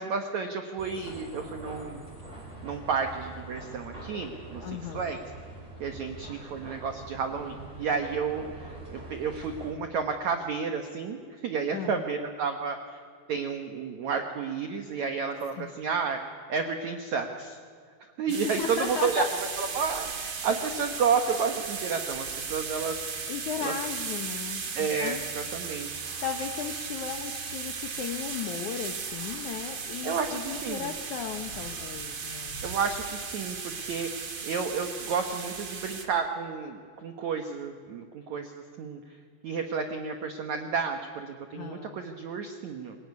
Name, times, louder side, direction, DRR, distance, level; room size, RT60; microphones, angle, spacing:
voice 1, 0.0-2.0 2.6-5.2 5.8-13.0 13.3-16.2 16.5-17.6 18.2-19.2 19.6-23.0 23.6-23.7 24.7-26.0 30.0-30.9 32.6-39.0 39.4-43.0, right 5 dB, 75° right, 5 dB, 1.6 m, -31 dB
sound 1, 0.8-9.7, right 2 dB, 10° right, 4.4 m, -44 dB
voice 2, 4.6-5.1 11.7-12.0 15.6-15.7 18.6-19.3 23.3-25.2 26.2-32.6 41.5-42.0, left 7 dB, 75° left, 5 dB, 1.8 m, -36 dB
sound 2, 18.3-36.0, right 5 dB, 45° right, 1.8 m, -36 dB
26.5 x 17.5 x 9.6 m, 2.1 s
omnidirectional pair, 5.1 m